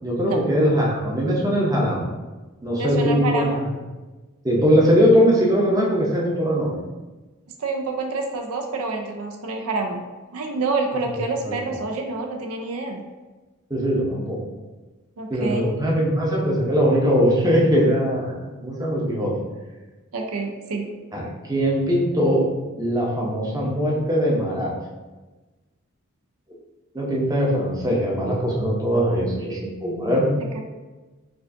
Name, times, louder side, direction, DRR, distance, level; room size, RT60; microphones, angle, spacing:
voice 1, 0.0-2.1 2.6-3.5 4.4-6.9 11.5-11.6 13.7-14.4 15.3-19.3 21.1-22.4 22.8-24.7 26.9-30.3, equal, 15° right, -3 dB, 0.6 m, -21 dB
voice 2, 2.8-3.6 7.6-10.0 10.3-13.0 15.2-15.7 20.1-20.9 30.5-30.6, right 3 dB, 85° right, 3 dB, 0.5 m, -27 dB
4.7 x 2.4 x 2.5 m, 1.2 s
head